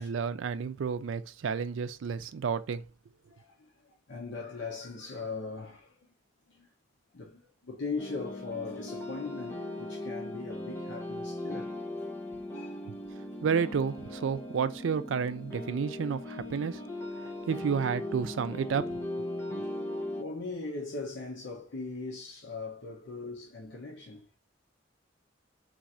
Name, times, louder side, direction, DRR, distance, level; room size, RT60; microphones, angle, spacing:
voice 1, 0.0-2.8 12.8-12.9 13.4-16.8 17.5-18.9 19.2-19.3, right 6 dB, 85° right, 0.4 m, -31 dB
voice 2, 3.3-6.0 6.5-6.7 7.1-12.1 12.5-12.9 13.3-13.4 20.2-24.4, left 3 dB, 70° left, 0.8 m, -40 dB
sound 1, 8.0-20.2, left 1 dB, 15° left, 0.7 m, -38 dB
3.9 x 2.5 x 4.2 m
head